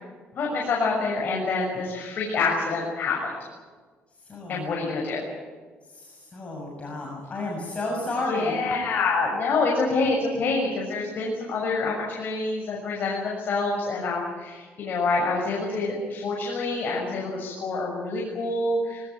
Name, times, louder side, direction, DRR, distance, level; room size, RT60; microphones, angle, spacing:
voice 1, 0.4-3.2 4.5-5.3 8.3-19.1, left 3 dB, 50° left, -1 dB, 6.6 m, -26 dB
voice 2, 4.3-4.7 5.9-8.5, left 2 dB, 30° left, -2 dB, 6.9 m, -32 dB
23.0 x 19.0 x 9.4 m, 1.5 s
cardioid pair, 115°, 4 cm